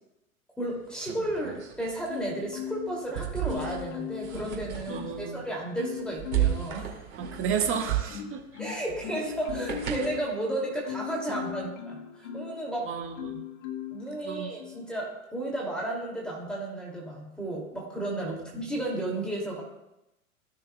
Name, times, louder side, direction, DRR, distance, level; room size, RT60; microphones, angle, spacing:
voice 1, 0.6-7.0 8.6-12.9 13.9-19.6, right 1 dB, ahead, -5 dB, 2.3 m, -33 dB
sound 1, 0.6-10.3, right 12 dB, 75° right, 2.3 m, -35 dB
Marimba xylophone, 2.1-3.1 3.5-5.3 5.8-6.7 7.2-12.6 13.2-14.0 14.6-14.8, left 9 dB, 55° left, 1.3 m, -38 dB
voice 2, 4.9-5.4 7.2-8.4 11.3-11.7 12.8-13.4 14.2-14.5 18.2-18.6, right 7 dB, 30° right, 2 dB, 1.6 m, -33 dB
15.5 x 6.7 x 2.2 m, 0.91 s
hypercardioid pair, 95°, 42 cm